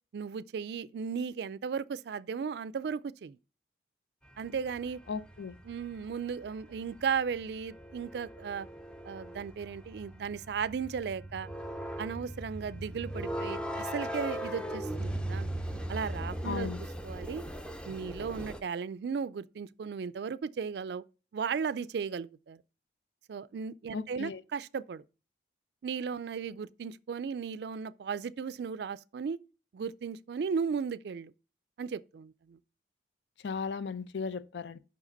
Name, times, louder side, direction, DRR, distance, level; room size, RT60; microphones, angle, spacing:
voice 1, 0.1-3.4 4.4-5.0 5.6-8.7 9.0-11.5 12.0-15.5 15.9-16.7 17.0-17.4 17.8-21.0 21.3-22.6 23.3-25.0 25.8-29.4 29.7-31.3 31.8-32.6, right 6 dB, 70° right, 0.3 m, -36 dB
sound 1, 4.3-18.6, right 1 dB, 5° left, 0.5 m, -39 dB
voice 2, 5.1-5.6 16.4-16.8 23.9-24.4 33.4-34.8, left 5 dB, 80° left, 0.5 m, -36 dB
5.8 x 4.9 x 5.2 m
head